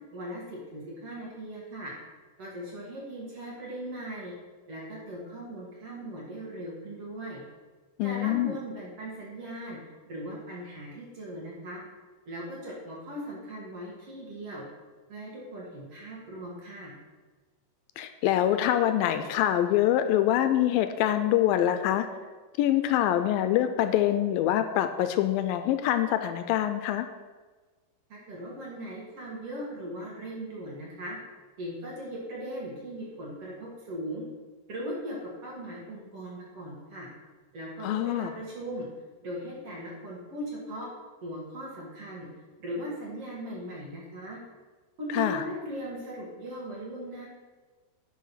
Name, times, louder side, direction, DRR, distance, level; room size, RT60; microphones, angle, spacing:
voice 1, 0.1-1.9 2.4-4.3 4.7-7.4 8.0-9.8 10.0-11.8 12.3-14.6 15.1-17.0 28.1-31.2 31.6-34.2 34.7-37.1 37.5-38.9 39.2-40.9 41.2-42.3 42.6-44.4 45.0-47.3, right 1 dB, 45° right, -4 dB, 2.6 m, -39 dB
voice 2, 8.0-8.6 18.0-22.1 22.6-27.1 37.8-38.3 45.1-45.4, left 12 dB, 80° left, 9 dB, 2.2 m, -25 dB
10.0 x 5.8 x 5.7 m, 1.3 s
omnidirectional pair, 4.2 m